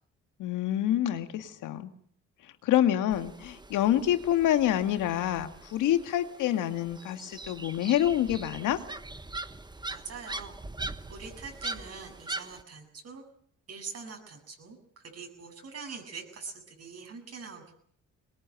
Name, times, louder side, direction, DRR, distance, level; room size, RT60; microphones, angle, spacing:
voice 1, 0.4-1.9 2.6-8.8, left 11 dB, 90° left, 9 dB, 2.0 m, -27 dB
sound 1, 3.1-12.6, right 2 dB, 15° right, 1.2 m, -42 dB
voice 2, 9.9-10.6 11.1-13.2 13.7-17.7, right 5 dB, 55° right, 4 dB, 7.7 m, -43 dB
21.5 x 21.0 x 9.1 m, 0.63 s
cardioid pair, 90°, 30 cm